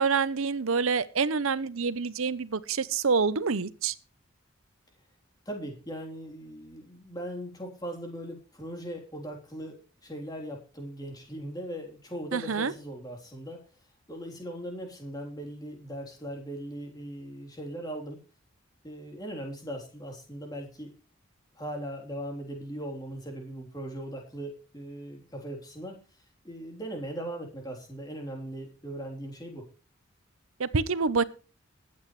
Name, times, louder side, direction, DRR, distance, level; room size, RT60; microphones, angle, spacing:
voice 1, 0.0-3.9 12.3-12.7 30.6-31.2, right 5 dB, 85° right, 16 dB, 0.8 m, -27 dB
voice 2, 5.5-9.8 10.0-13.6 14.1-18.2 18.8-20.9 21.6-26.0 26.4-29.6, right 1 dB, 20° left, 1 dB, 3.6 m, -39 dB
20.5 x 8.8 x 3.2 m, 0.36 s
head